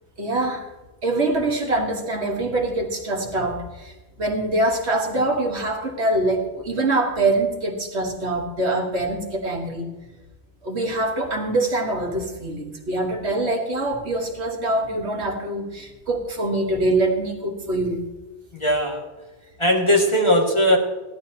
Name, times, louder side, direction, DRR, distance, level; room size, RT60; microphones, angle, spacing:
voice 1, 0.2-0.7 1.0-3.9 4.2-9.9 10.6-18.0, right 2 dB, 70° right, 2 dB, 1.7 m, -24 dB
voice 2, 18.5-19.0 19.6-20.8, equal, 25° left, -1 dB, 2.1 m, -19 dB
16.0 x 11.5 x 2.9 m, 1.2 s
omnidirectional pair, 1.2 m